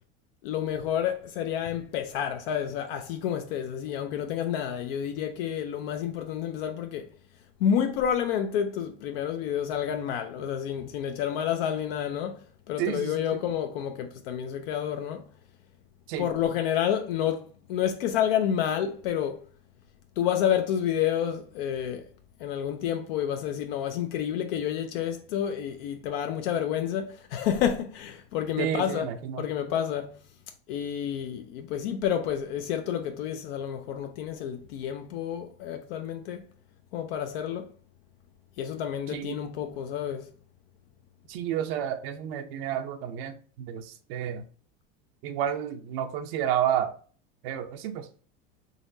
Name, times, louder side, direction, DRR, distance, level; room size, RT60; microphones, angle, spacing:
voice 1, 0.4-7.1 7.6-15.3 16.2-19.4 20.2-22.1 22.4-29.1 29.4-30.2 30.7-36.4 36.9-37.7 38.6-40.3, left 9 dB, 80° left, 0.5 m, -29 dB
voice 2, 12.8-13.2 16.1-16.3 28.6-29.4 39.1-39.4 41.3-44.4 45.2-46.9 47.4-48.1, right 10 dB, 80° right, 0.5 m, -30 dB
4.0 x 3.0 x 2.6 m
supercardioid pair, 125°, 29 cm